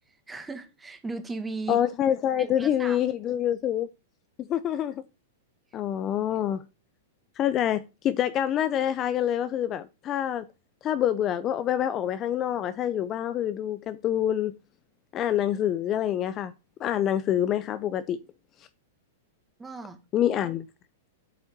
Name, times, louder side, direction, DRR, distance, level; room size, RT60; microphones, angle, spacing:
voice 1, 0.3-1.8 2.4-3.0 19.6-20.0, right 3 dB, 10° right, 1.7 m, -36 dB
voice 2, 1.7-3.9 4.5-4.9 5.7-6.6 7.4-10.5 10.8-14.5 15.1-16.5 16.8-18.2 20.1-20.7, left 10 dB, 30° left, 0.5 m, -26 dB
8.2 x 5.6 x 6.7 m
hypercardioid pair, 140°, 0 cm